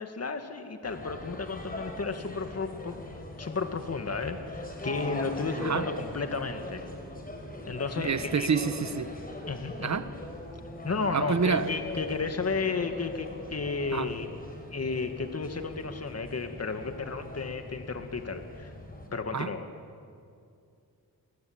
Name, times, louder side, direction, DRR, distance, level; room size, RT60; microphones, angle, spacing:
voice 1, 0.0-6.8 7.6-8.5 9.5-10.0 10.8-14.3 14.7-18.7 19.1-19.7, left 4 dB, 40° left, 7 dB, 2.1 m, -33 dB
sound 1, 0.8-19.1, left 1 dB, 20° left, 5.7 m, -41 dB
voice 2, 8.0-9.1 9.8-10.1 11.1-11.7 13.9-14.1 19.3-19.5, right 5 dB, 45° right, 12 dB, 1.3 m, -28 dB
29.5 x 21.0 x 8.8 m, 2.4 s
wide cardioid pair, 90°, 38 cm